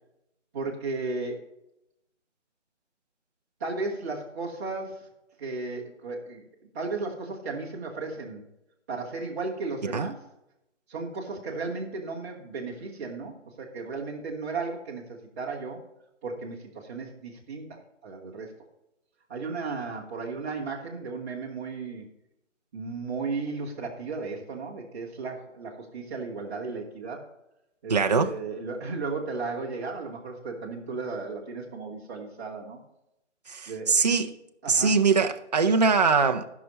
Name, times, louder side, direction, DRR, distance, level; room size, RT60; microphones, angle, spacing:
voice 1, 0.5-1.4 3.6-5.1 5.4-6.4 6.7-8.4 8.9-10.2 10.9-15.8 16.2-18.5 19.3-22.0 22.7-27.3 27.8-32.8 33.7-33.9 34.6-34.9, right 3 dB, 15° right, 1.1 m, -35 dB
voice 2, 27.9-28.3 33.5-34.4 34.7-36.5, right 5 dB, 35° right, 0.6 m, -22 dB
12.5 x 6.0 x 5.4 m
figure-of-eight pair, 160°, 37 cm